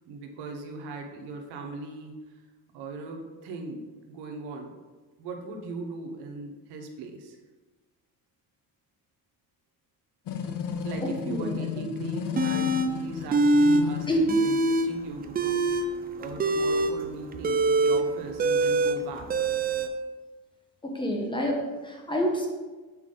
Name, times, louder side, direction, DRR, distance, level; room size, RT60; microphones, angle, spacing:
voice 1, 0.1-2.1 2.7-3.8 4.1-4.7 5.2-7.4 10.8-19.5, right 3 dB, 90° right, 3 dB, 1.0 m, -39 dB
sound 1, 10.3-14.3, left 7 dB, 60° left, 0.7 m, -34 dB
voice 2, 11.0-11.9 14.1-14.4 20.8-22.5, equal, 10° left, 0 dB, 1.1 m, -28 dB
sound 2, 12.4-12.9 13.3-13.8 14.1-14.9 15.2-19.9, right 2 dB, 25° right, 0.4 m, -23 dB
6.0 x 4.3 x 3.8 m, 1.3 s
cardioid pair, 110°, 38 cm